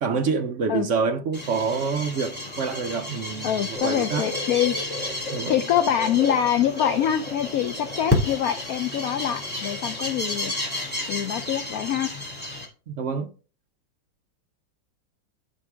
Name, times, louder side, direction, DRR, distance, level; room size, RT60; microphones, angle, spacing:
voice 1, 0.0-4.3 5.3-5.5 12.9-13.3, right 5 dB, 55° right, 0.8 m, -27 dB
sound 1, 1.3-12.7, left 2 dB, 5° left, 2.1 m, -31 dB
voice 2, 3.4-4.8 5.5-10.5 11.1-12.1, left 10 dB, 70° left, 0.9 m, -24 dB
sound 2, 3.7-8.8 9.1-10.1 10.3-10.5 11.5-11.6, left 3 dB, 90° left, 2.1 m, -36 dB
13.0 x 4.4 x 3.5 m
omnidirectional pair, 2.0 m